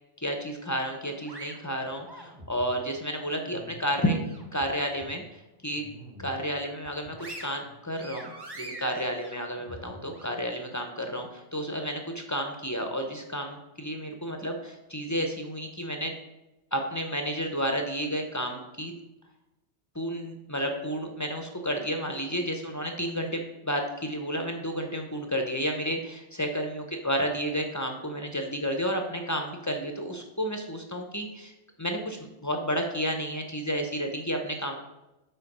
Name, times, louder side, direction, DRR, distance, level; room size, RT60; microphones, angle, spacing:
voice 1, 0.2-4.2 4.5-5.2 5.6-5.8 6.2-16.1 16.7-18.9 19.9-31.5 31.8-34.8, equal, 20° left, 4 dB, 0.5 m, -31 dB
sound 1, 0.7-2.7 3.2-4.6 5.0-5.2 5.6-6.4 6.8-10.3, right 1 dB, 25° right, 0.8 m, -45 dB
5.6 x 4.4 x 5.3 m, 0.98 s
omnidirectional pair, 1.2 m